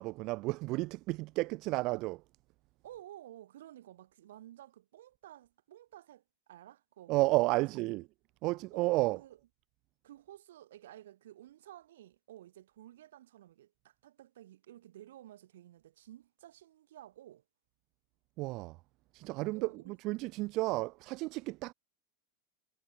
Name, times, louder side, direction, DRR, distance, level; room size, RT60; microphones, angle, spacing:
voice 1, 0.0-2.2 7.1-8.0 8.4-9.2 18.4-18.8 19.1-21.7, right 22 dB, 50° right, 0.4 m, -32 dB
voice 2, 2.8-8.0 8.7-9.4 10.0-17.4 19.5-20.0, right 13 dB, 75° right, 5.6 m, -53 dB
hypercardioid pair, 100°, 0 cm